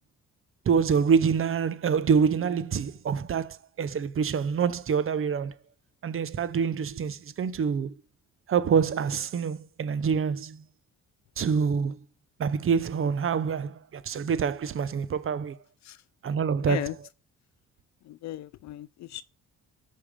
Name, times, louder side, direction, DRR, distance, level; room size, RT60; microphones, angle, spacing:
voice 1, 0.7-5.5 6.0-7.9 8.5-10.6 11.4-12.0 12.4-15.6 16.2-16.8, right 6 dB, 45° right, 0.8 m, -26 dB
voice 2, 16.6-17.0 18.0-19.2, left 14 dB, 65° left, 0.5 m, -36 dB
13.5 x 5.7 x 5.1 m
cardioid pair, 90°, 30 cm